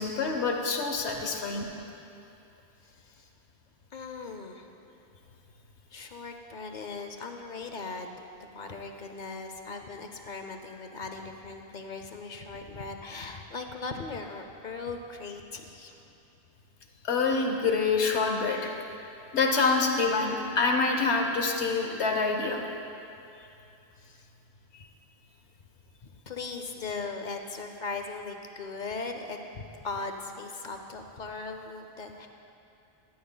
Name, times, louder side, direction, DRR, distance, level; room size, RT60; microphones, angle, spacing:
voice 1, 0.0-1.7 17.0-18.7 19.3-22.6, left 4 dB, 85° left, 3 dB, 1.2 m, -26 dB
voice 2, 2.8-3.3 3.9-4.7 5.9-8.1 8.5-16.1 24.0-24.3 26.3-32.3, left 4 dB, 50° left, 5 dB, 0.7 m, -39 dB
15.0 x 12.0 x 2.2 m, 2.8 s
omnidirectional pair, 1.1 m